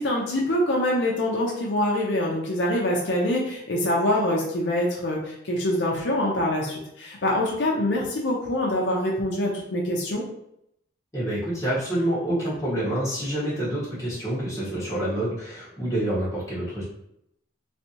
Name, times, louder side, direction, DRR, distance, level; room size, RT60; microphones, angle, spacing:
voice 1, 0.0-10.2, left 1 dB, 60° left, -2 dB, 0.6 m, -25 dB
voice 2, 11.1-16.8, right 1 dB, 15° left, -9 dB, 1.1 m, -27 dB
3.2 x 2.6 x 2.8 m, 0.77 s
head